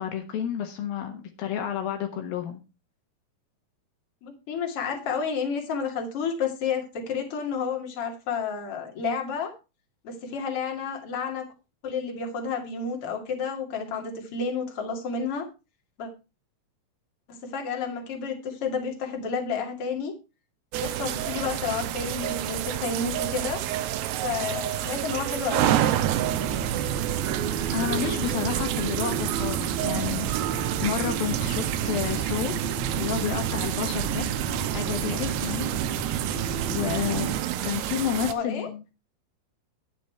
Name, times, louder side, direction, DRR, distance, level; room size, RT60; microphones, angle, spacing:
voice 1, 0.0-2.6 27.7-32.6 33.0-34.3 34.7-35.7 36.7-38.8, left 9 dB, 75° left, 5 dB, 3.0 m, -30 dB
voice 2, 4.2-9.5 10.0-11.5 11.8-15.5 16.0-16.1 17.3-20.1 20.7-23.6 24.2-25.7 38.2-38.7, left 5 dB, 40° left, 2 dB, 2.9 m, -30 dB
sound 1, 20.7-38.3, right 12 dB, 85° right, 2.7 m, -29 dB
sound 2, 26.0-37.4, right 7 dB, 70° right, 1.2 m, -31 dB
10.5 x 9.0 x 4.6 m, 0.29 s
omnidirectional pair, 4.3 m